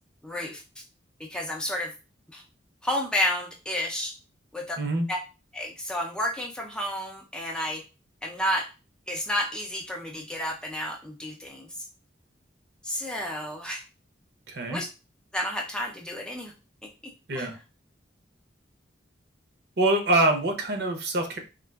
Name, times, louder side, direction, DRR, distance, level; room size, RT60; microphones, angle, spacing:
voice 1, 0.2-0.6 1.2-1.9 2.3-2.4 2.8-4.1 4.5-4.8 5.1-5.2 5.5-7.8 8.2-8.7 9.1-11.7 12.8-13.8 14.7-14.9 15.3-16.5 17.4-17.5, left 1 dB, 5° left, 0 dB, 0.4 m, -31 dB
voice 2, 4.8-5.1 14.5-14.8 17.3-17.6 19.8-21.4, right 2 dB, 60° right, 4 dB, 0.7 m, -25 dB
3.7 x 2.4 x 2.2 m, 0.30 s
head